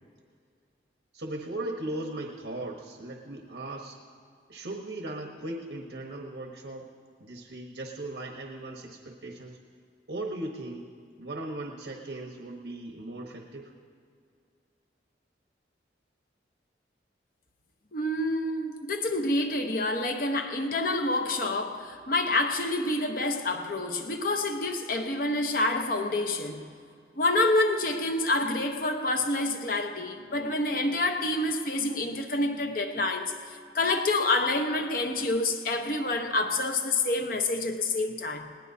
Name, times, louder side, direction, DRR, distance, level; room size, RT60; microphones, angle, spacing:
voice 1, 1.1-4.0 4.5-6.9 7.2-9.6 10.1-10.8 11.2-13.7, right 1 dB, 75° right, 1.1 m, -38 dB
voice 2, 17.9-26.7 27.2-38.5, left 2 dB, 50° left, 1.0 m, -28 dB
20.0 x 18.0 x 2.8 m
head